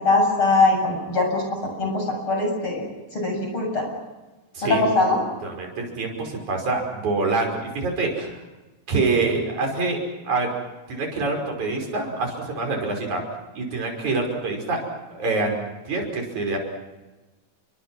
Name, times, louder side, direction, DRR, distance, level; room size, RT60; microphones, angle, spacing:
voice 1, 0.0-2.8 3.1-3.9 4.6-5.2, left 3 dB, 35° left, 2 dB, 8.2 m, -21 dB
voice 2, 5.4-8.4 8.9-10.0 10.2-10.5 10.9-13.2 13.6-14.8 15.1-16.6, right 3 dB, 55° right, 1 dB, 6.9 m, -26 dB
30.0 x 24.0 x 6.2 m, 1.1 s
omnidirectional pair, 4.1 m